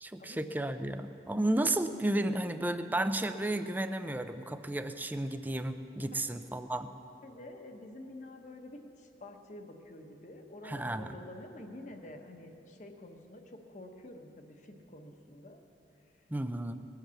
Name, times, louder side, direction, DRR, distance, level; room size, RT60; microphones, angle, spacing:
voice 1, 0.0-6.9 10.6-11.1 16.3-16.8, right 1 dB, 10° right, 9 dB, 0.5 m, -33 dB
voice 2, 7.2-15.6, left 1 dB, 45° left, 4 dB, 1.2 m, -48 dB
20.0 x 8.0 x 7.1 m, 2.9 s
head